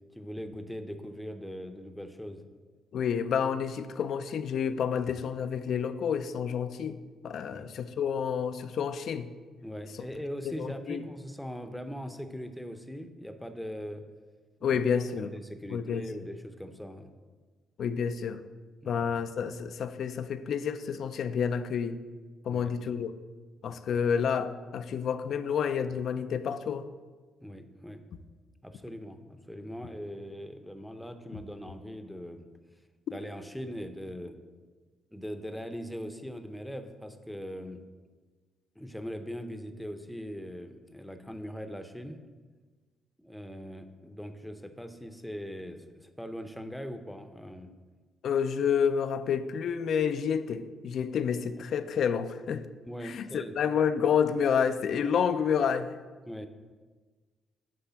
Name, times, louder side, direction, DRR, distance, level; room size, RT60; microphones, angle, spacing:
voice 1, 0.1-2.4 7.5-7.7 9.6-14.0 14.6-14.8 15.2-17.1 18.8-19.0 22.5-22.7 27.4-28.1 28.6-32.5 33.1-34.4 35.1-37.8 38.8-42.2 43.2-47.7 52.9-53.5 56.3-56.5, equal, 5° left, 7 dB, 0.7 m, -40 dB
voice 2, 2.9-7.0 7.2-9.3 10.4-11.0 14.6-15.3 15.7-16.3 17.8-18.4 18.8-22.0 22.4-23.1 23.6-26.9 31.3-31.4 48.2-52.7 53.0-55.9, left 7 dB, 65° left, 11 dB, 0.4 m, -29 dB
9.8 x 3.3 x 5.7 m, 1.4 s
cardioid pair, 90°, 0 cm